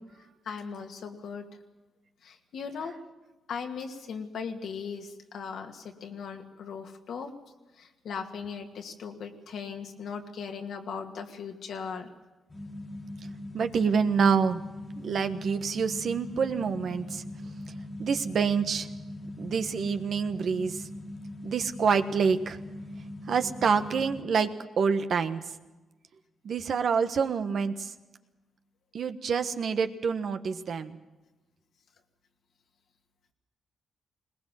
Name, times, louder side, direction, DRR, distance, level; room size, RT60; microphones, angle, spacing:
voice 1, 0.5-1.5 2.2-2.9 3.5-7.3 7.8-12.1, left 6 dB, 75° left, 4 dB, 2.3 m, -38 dB
sound 1, 12.5-24.2, left 1 dB, 30° left, 2.0 m, -41 dB
voice 2, 13.5-14.6 15.0-17.2 18.0-18.9 19.4-20.8 21.4-22.6 23.3-24.5 24.8-25.4 26.4-27.9 28.9-31.0, right 6 dB, 65° right, 8 dB, 1.3 m, -27 dB
21.0 x 19.5 x 7.6 m, 1.1 s
supercardioid pair, 55°, 0 cm